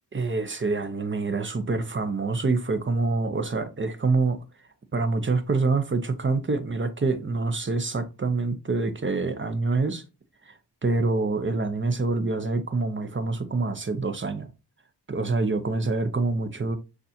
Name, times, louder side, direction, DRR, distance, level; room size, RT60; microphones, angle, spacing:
voice 1, 0.1-4.4 4.9-10.0 10.5-14.5 15.1-16.8, right 3 dB, 30° right, 0.8 m, -26 dB
6.5 x 2.6 x 2.8 m
wide cardioid pair, 75°, 42 cm